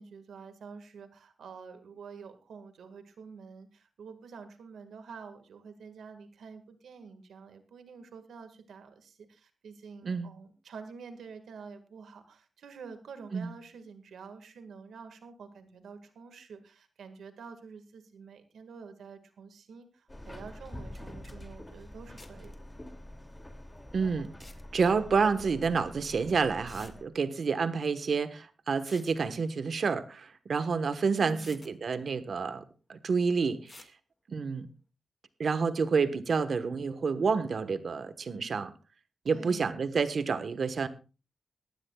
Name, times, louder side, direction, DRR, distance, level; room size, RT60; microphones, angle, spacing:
voice 1, 0.0-22.5 31.1-31.6 39.3-39.6, right 5 dB, 90° right, 8 dB, 1.8 m, -48 dB
Subway metro underground, 20.1-27.0, left 1 dB, 20° left, 2.6 m, -46 dB
sound 1, 21.0-21.1 21.2-21.3 22.2-22.6 24.2-24.6 26.0-26.1 26.7-26.9 28.7-29.2 30.7-30.8 31.3-31.7 33.7-33.9, left 2 dB, 35° left, 1.9 m, -52 dB
voice 2, 23.9-24.3 24.7-32.6 32.9-33.9 34.3-34.7 35.4-38.7 39.2-40.9, right 5 dB, 70° right, 12 dB, 1.3 m, -29 dB
20.0 x 15.0 x 2.4 m, 0.33 s
cardioid pair, 50°, 0 cm